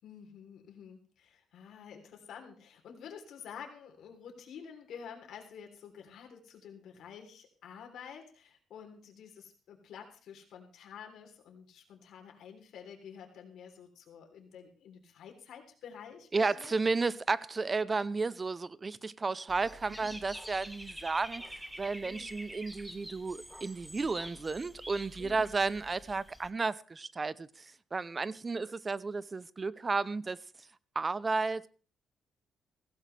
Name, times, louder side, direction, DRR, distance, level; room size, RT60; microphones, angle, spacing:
voice 1, 0.0-16.8 19.9-20.2 22.0-22.4 25.2-25.6, left 7 dB, 75° left, 3.4 m, -50 dB
voice 2, 16.3-21.4 21.8-30.4 31.0-31.7, right 4 dB, 30° right, 0.6 m, -33 dB
Dog / Bird, 19.5-26.5, equal, 5° right, 1.3 m, -47 dB
16.0 x 15.5 x 3.3 m
cardioid pair, 90°, 0 cm